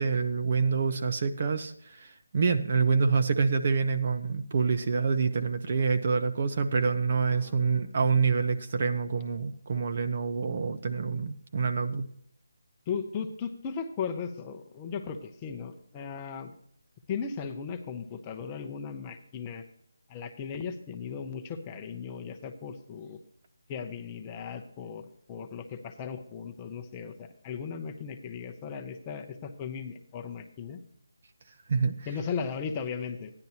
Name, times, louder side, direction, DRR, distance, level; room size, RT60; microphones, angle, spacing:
voice 1, 0.0-12.1 31.7-32.1, right 5 dB, 40° right, 8 dB, 0.6 m, -27 dB
voice 2, 7.4-7.9 12.9-16.5 17.1-19.6 20.1-23.2 23.7-30.8 32.1-33.3, left 6 dB, 15° left, 5 dB, 0.7 m, -37 dB
13.5 x 10.5 x 2.8 m, 0.65 s
figure-of-eight pair, 170°, 0 cm